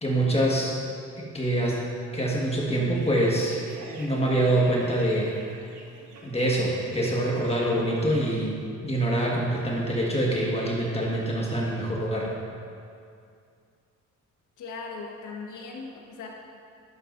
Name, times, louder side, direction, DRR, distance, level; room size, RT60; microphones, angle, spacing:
voice 1, 0.0-0.8 1.2-1.8 2.1-3.6 4.0-5.3 6.2-12.3, right 1 dB, 20° left, -4 dB, 1.6 m, -25 dB
sound 1, 2.9-8.5, right 2 dB, 90° right, 1.3 m, -46 dB
voice 2, 14.6-16.3, left 4 dB, 80° left, 0 dB, 1.4 m, -38 dB
11.0 x 9.8 x 2.6 m, 2.4 s
cardioid pair, 90°, 30 cm